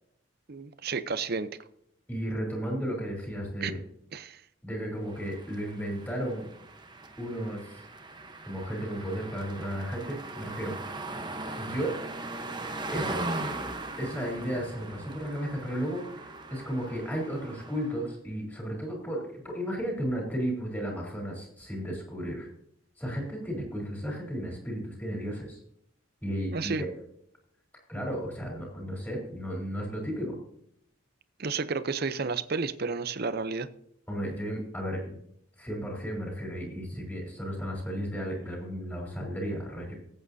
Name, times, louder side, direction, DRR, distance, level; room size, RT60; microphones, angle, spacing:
voice 1, 0.5-1.5 3.6-3.7 4.1-4.4 26.5-26.8 31.4-33.7, right 4 dB, 50° right, 0.7 m, -31 dB
voice 2, 2.1-3.8 4.6-6.5 7.2-7.8 8.5-10.7 11.6-11.9 12.9-13.2 14.0-16.0 16.5-22.5 23.0-25.6 26.2-26.9 27.9-30.4 34.1-35.2 35.6-39.9, equal, 10° left, 3.8 m, -34 dB
sound 1, 5.1-18.1, right 2 dB, 20° right, 1.0 m, -39 dB
19.0 x 8.8 x 2.7 m
head